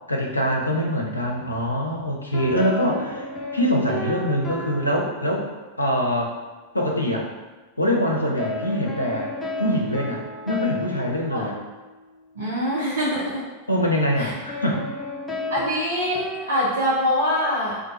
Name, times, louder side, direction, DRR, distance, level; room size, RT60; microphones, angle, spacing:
voice 1, 0.1-5.5 5.8-6.4 6.7-7.3 7.8-9.3 9.6-11.6 13.7-14.8, equal, 80° left, -1 dB, 0.5 m, -24 dB
sound 1, 2.3-5.7 8.4-12.2 14.5-16.5, left 1 dB, 10° left, 0.5 m, -33 dB
voice 2, 12.4-13.4 14.2-14.3 15.5-17.8, equal, 65° right, -6 dB, 0.6 m, -24 dB
2.5 x 2.2 x 3.9 m, 1.2 s
figure-of-eight pair, 90°, 0 cm